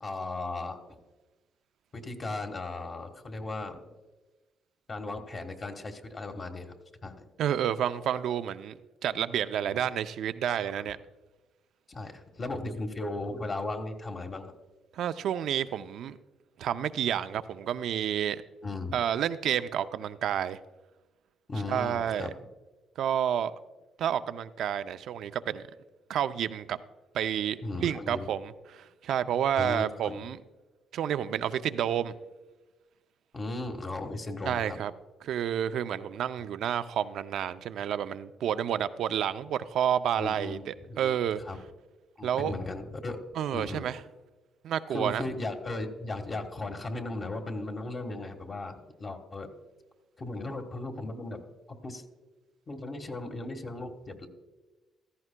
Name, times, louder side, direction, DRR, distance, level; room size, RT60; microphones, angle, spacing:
voice 1, 0.0-0.8 1.9-3.8 4.9-6.7 7.0-7.2 9.6-9.8 10.5-10.9 11.9-14.5 18.6-19.0 21.5-22.3 27.6-28.3 29.6-30.3 33.3-34.8 40.1-41.2 41.4-41.6 42.2-43.2 43.5-43.9 44.9-49.5 50.2-51.4 51.8-52.0 52.7-54.3, left 2 dB, 35° left, 4 dB, 1.4 m, -36 dB
voice 2, 7.4-8.8 9.0-11.0 14.9-16.2 16.6-18.4 18.9-20.6 21.7-22.3 23.0-23.5 24.0-25.6 26.1-26.8 27.1-30.4 30.9-32.1 34.5-34.9 35.2-41.4 42.2-42.5 43.4-44.0 44.6-45.2, right 9 dB, 75° right, 12 dB, 0.4 m, -30 dB
15.5 x 14.0 x 2.2 m, 1.2 s
cardioid pair, 90°, 0 cm